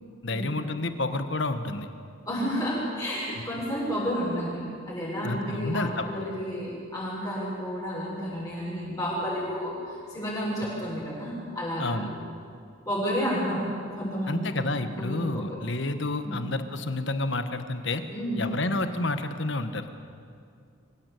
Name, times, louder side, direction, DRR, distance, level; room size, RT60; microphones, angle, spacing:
voice 1, 0.2-1.9 5.2-6.2 11.8-12.1 14.3-18.0 18.4-19.9, left 2 dB, 60° left, 9 dB, 1.4 m, -29 dB
voice 2, 2.3-12.2 12.9-13.6 13.9-14.5 15.0-15.4 16.2-16.5 18.1-18.5, equal, 15° left, -7 dB, 7.0 m, -31 dB
25.5 x 16.0 x 8.5 m, 2.3 s
head